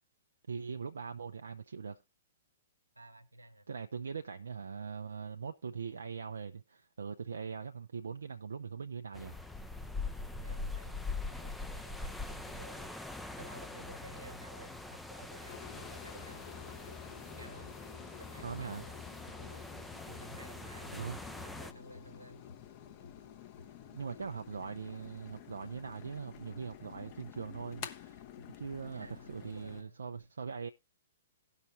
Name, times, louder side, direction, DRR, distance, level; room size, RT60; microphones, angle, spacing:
voice 1, 0.5-2.0 3.7-9.4 18.4-18.8 19.3-19.5 20.9-21.2 23.9-28.2 28.6-30.7, right 6 dB, 70° right, 0.5 m, -41 dB
voice 2, 2.9-3.7 10.3-13.0 13.3-17.8 18.2-19.0 19.4-19.7 20.0-22.4 28.4-28.5 28.9-30.3, right 1 dB, 90° right, 1.0 m, -54 dB
sound 1, 9.1-21.7, left 3 dB, 5° left, 0.5 m, -43 dB
sound 2, 15.5-29.8, left 10 dB, 40° left, 0.9 m, -51 dB
sound 3, 21.9-24.3, left 4 dB, 75° left, 2.9 m, -59 dB
17.0 x 5.8 x 2.7 m
figure-of-eight pair, 115°, 0 cm